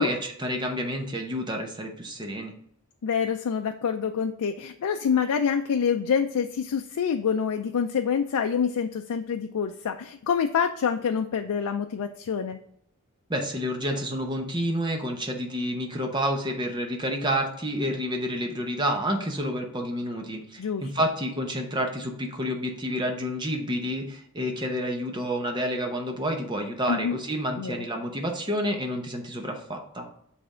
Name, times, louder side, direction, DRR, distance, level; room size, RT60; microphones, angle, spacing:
voice 1, 0.0-2.5 13.3-30.1, equal, 20° right, 3 dB, 0.8 m, -29 dB
voice 2, 3.0-12.6 20.6-20.8 26.9-27.2 27.6-27.9, left 7 dB, 90° left, 6 dB, 0.4 m, -26 dB
7.7 x 3.4 x 3.7 m, 0.72 s
head